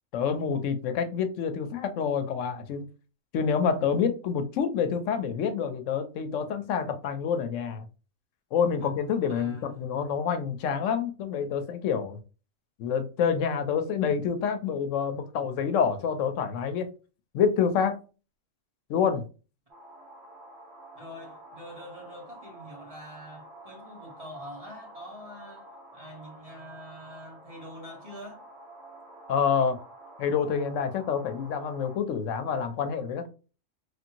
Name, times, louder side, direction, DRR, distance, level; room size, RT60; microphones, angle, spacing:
voice 1, 0.1-2.9 3.3-7.8 8.5-12.2 12.8-16.9 17.3-18.0 18.9-19.2 29.3-29.8 30.2-33.3, left 7 dB, 80° left, 0.9 m, -27 dB
voice 2, 9.3-10.0 20.9-28.4, equal, 30° right, 1.0 m, -45 dB
sound 1, 19.7-32.0, right 1 dB, 60° right, 1.3 m, -49 dB
3.2 x 2.6 x 2.8 m
omnidirectional pair, 1.3 m